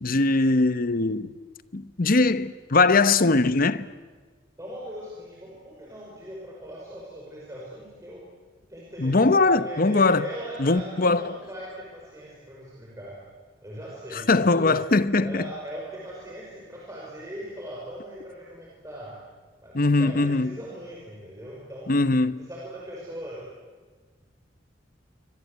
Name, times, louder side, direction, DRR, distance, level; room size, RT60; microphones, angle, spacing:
voice 1, 0.0-1.3 1.7-3.9 9.0-10.2 10.6-11.3 14.1-15.5 19.7-20.5 21.9-22.5, left 3 dB, 50° left, 0.9 m, -21 dB
voice 2, 4.6-8.2 8.7-13.2 13.6-14.8 15.2-19.2 19.6-21.9 22.4-23.5, equal, 15° right, 5.7 m, -40 dB
27.5 x 24.0 x 8.2 m
head